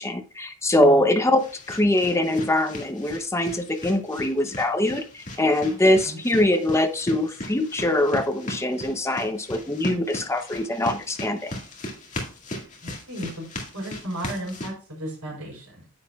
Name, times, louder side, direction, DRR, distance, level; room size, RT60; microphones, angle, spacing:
voice 1, 0.0-11.5, left 1 dB, 10° left, 7 dB, 0.8 m, -23 dB
sound 1, 0.7-14.7, left 1 dB, 35° left, 2.0 m, -37 dB
voice 2, 5.6-6.2 12.8-15.8, right 1 dB, 80° right, 0 dB, 4.8 m, -35 dB
9.6 x 8.2 x 2.4 m, 0.37 s
head